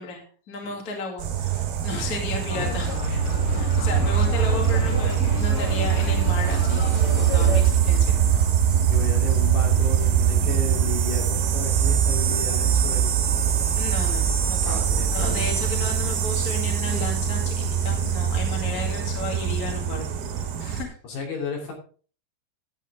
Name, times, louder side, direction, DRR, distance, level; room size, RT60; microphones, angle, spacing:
voice 1, 0.0-3.0 3.5-8.4 13.7-20.9, left 3 dB, 35° left, 1 dB, 1.5 m, -34 dB
sound 1, 1.2-20.8, right 8 dB, 65° right, 3.2 m, -22 dB
sound 2, 2.5-7.6, left 3 dB, 85° left, 1.1 m, -30 dB
voice 2, 8.9-13.1 14.6-15.5 21.0-21.7, left 3 dB, 60° left, 0 dB, 4.6 m, -33 dB
11.5 x 8.6 x 3.6 m, 0.40 s
omnidirectional pair, 5.2 m